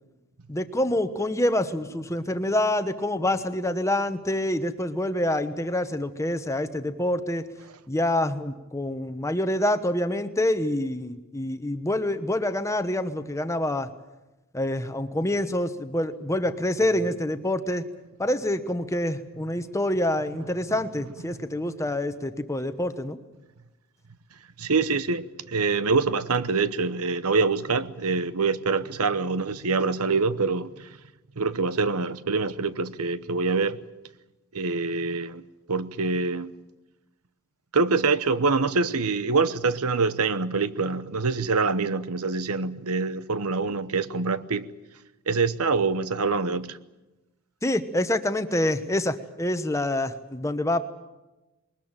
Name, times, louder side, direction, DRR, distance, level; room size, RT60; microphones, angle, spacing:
voice 1, 0.5-7.5 7.9-13.9 14.5-17.8 18.2-23.2 47.6-50.8, left 1 dB, 15° left, 1.0 m, -26 dB
voice 2, 24.6-31.0 31.4-33.8 34.5-36.5 37.7-44.7 45.3-46.8, right 4 dB, 80° right, 1.0 m, -25 dB
22.0 x 20.0 x 8.9 m
head